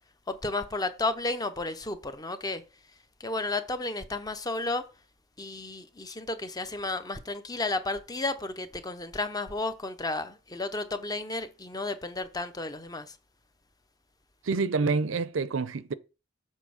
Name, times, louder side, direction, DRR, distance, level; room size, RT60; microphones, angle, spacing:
voice 1, 0.3-2.6 3.2-4.8 5.4-13.2, left 2 dB, 20° left, 0.7 m, -32 dB
voice 2, 14.5-15.9, right 4 dB, 75° right, 0.6 m, -27 dB
7.4 x 4.2 x 6.4 m
head